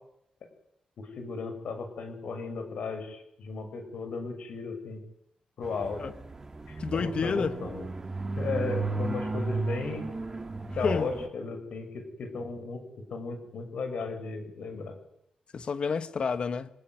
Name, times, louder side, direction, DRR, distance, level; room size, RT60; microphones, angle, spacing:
voice 1, 1.0-5.0 5.6-6.0 6.7-7.9 8.4-10.0 10.7-12.8 13.1-15.0, left 4 dB, 70° left, 6 dB, 7.0 m, -35 dB
sound 1, 5.6-11.3, right 3 dB, 20° right, 2.9 m, -34 dB
voice 2, 6.8-7.5 10.8-11.1 15.5-16.7, left 5 dB, 45° left, 12 dB, 1.7 m, -29 dB
26.0 x 20.0 x 9.5 m, 0.75 s
wide cardioid pair, 165°, 2 cm